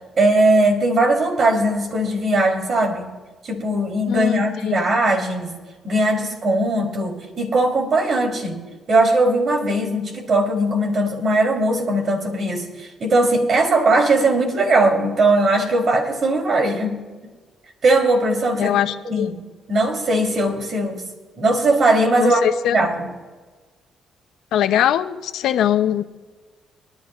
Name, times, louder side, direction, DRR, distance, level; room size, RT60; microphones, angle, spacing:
voice 1, 0.2-3.1 3.4-5.5 5.8-8.6 8.9-17.0 17.8-18.7 19.0-19.3 19.7-21.0 21.4-22.4 22.7-23.1, right 2 dB, 55° right, 2 dB, 3.6 m, -19 dB
voice 2, 4.1-4.8 18.6-19.3 22.2-22.8 24.5-26.1, left 11 dB, 80° left, 10 dB, 0.7 m, -21 dB
24.0 x 11.5 x 2.5 m, 1.3 s
cardioid pair, 90°, 0 cm